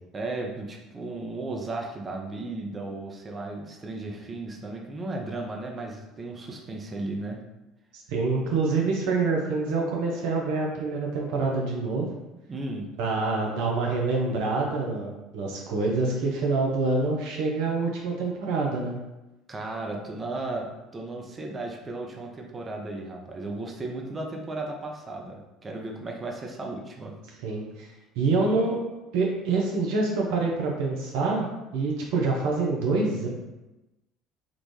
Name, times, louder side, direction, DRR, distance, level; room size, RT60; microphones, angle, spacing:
voice 1, 0.1-7.4 12.5-12.8 19.5-27.1, right 2 dB, 30° right, 0 dB, 0.7 m, -35 dB
voice 2, 8.1-12.1 13.0-19.0 27.4-27.9 28.2-28.8 29.1-33.3, right 3 dB, 70° right, -1 dB, 0.6 m, -26 dB
3.7 x 2.4 x 3.2 m, 1.0 s
hypercardioid pair, 65°, 0 cm